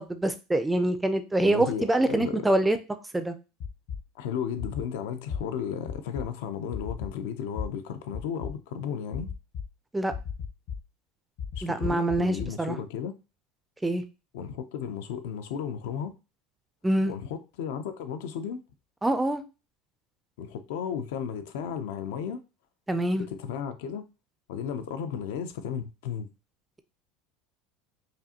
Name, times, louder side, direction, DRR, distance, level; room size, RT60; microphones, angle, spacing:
voice 1, 0.0-2.8 3.1-3.4 9.9-10.1 11.6-12.8 13.8-14.0 16.8-17.1 19.0-19.4 22.9-23.3, right 1 dB, 5° right, 0.3 m, -25 dB
voice 2, 1.4-2.5 4.2-9.3 11.5-13.1 14.3-16.1 17.1-18.6 20.4-22.4 23.1-24.0 24.5-26.3, left 7 dB, 80° left, 0.5 m, -34 dB
sound 1, 3.6-4.0 4.6-4.8 5.3-5.4 5.9-6.2 6.7-7.1 7.6-7.7 8.1-8.5 9.1-9.6 10.1-10.8 11.4-12.5, left 7 dB, 55° left, 1.0 m, -34 dB
5.1 x 2.5 x 2.8 m
cardioid pair, 160°, 0 cm